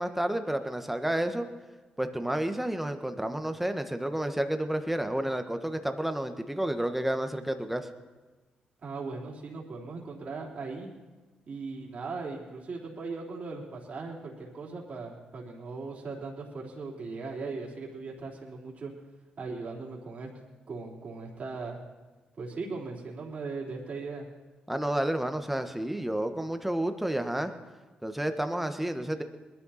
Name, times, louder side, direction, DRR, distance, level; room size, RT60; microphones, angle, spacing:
voice 1, 0.0-1.5 2.0-7.9 24.7-27.5 28.0-29.2, right 1 dB, 5° right, 7 dB, 1.4 m, -30 dB
voice 2, 8.8-10.9 11.5-18.9 19.4-20.3 20.7-21.8 22.4-24.2, right 4 dB, 50° right, -3 dB, 3.6 m, -38 dB
21.0 x 12.5 x 4.3 m, 1.2 s
cardioid pair, 65°, 3 cm